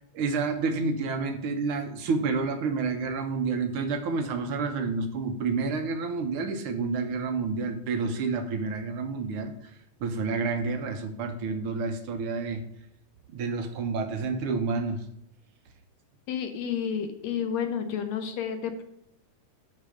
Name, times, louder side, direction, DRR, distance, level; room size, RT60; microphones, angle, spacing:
voice 1, 0.1-9.7 10.0-12.6 13.3-15.0, right 4 dB, 60° right, 6 dB, 1.5 m, -29 dB
voice 2, 16.3-18.8, left 7 dB, 70° left, 7 dB, 1.9 m, -30 dB
11.5 x 4.4 x 5.1 m, 0.79 s
omnidirectional pair, 3.6 m